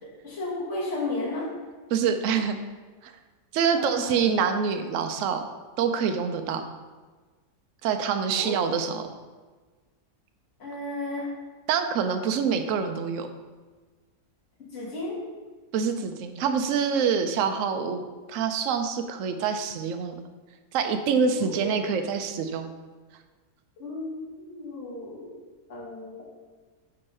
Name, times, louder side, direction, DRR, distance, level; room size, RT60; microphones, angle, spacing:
voice 1, 0.0-1.5 3.7-4.2 8.4-8.6 10.6-11.3 14.7-15.2 21.3-21.8 23.8-25.4 25.7-26.2, left 2 dB, 45° left, -7 dB, 2.3 m, -34 dB
voice 2, 1.9-2.6 3.0-3.1 3.5-5.4 5.8-6.6 7.8-9.1 11.7-13.3 15.7-18.0 18.3-20.1 20.7-22.7, right 6 dB, 65° right, 7 dB, 0.8 m, -26 dB
5.4 x 4.7 x 5.4 m, 1.4 s
omnidirectional pair, 1.8 m